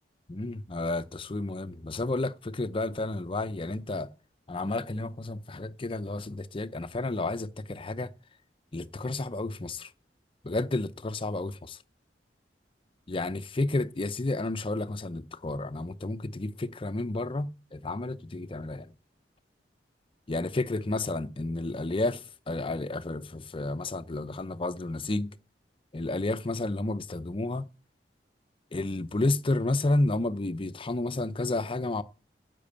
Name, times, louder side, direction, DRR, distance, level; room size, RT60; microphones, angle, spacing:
voice 1, 0.3-4.1 4.5-8.1 8.7-9.9 10.4-11.8 13.1-18.9 20.3-25.3 25.9-27.6 28.7-32.0, left 2 dB, 30° left, 0.6 m, -31 dB
10.5 x 7.6 x 8.6 m
head